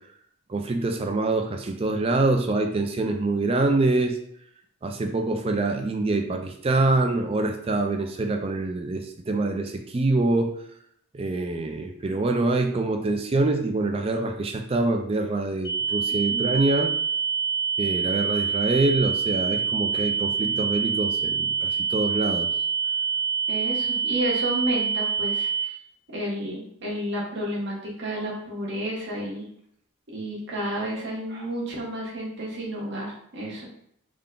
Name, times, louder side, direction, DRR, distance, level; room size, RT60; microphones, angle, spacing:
voice 1, 0.5-4.2 4.8-10.5 11.1-16.9 17.8-22.5, right 2 dB, 25° right, 4 dB, 0.4 m, -25 dB
sound 1, 15.6-25.6, right 6 dB, 50° left, 0.8 m, -26 dB
voice 2, 16.3-16.6 23.5-25.7 26.1-29.5 30.1-33.6, right 1 dB, 55° right, -4 dB, 1.1 m, -31 dB
3.6 x 2.2 x 3.7 m, 0.69 s
head